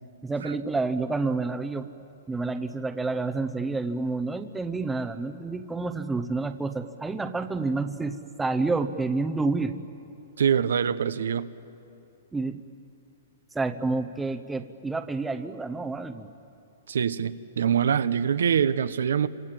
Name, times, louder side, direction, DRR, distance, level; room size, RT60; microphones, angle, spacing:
voice 1, 0.2-1.9 2.3-9.8 12.3-12.6 13.5-16.3, right 3 dB, 5° right, 8 dB, 0.9 m, -29 dB
voice 2, 10.4-11.5 16.9-19.3, right 8 dB, 85° right, 13 dB, 0.9 m, -24 dB
29.5 x 26.0 x 7.7 m, 2.7 s
hypercardioid pair, 160°, 0 cm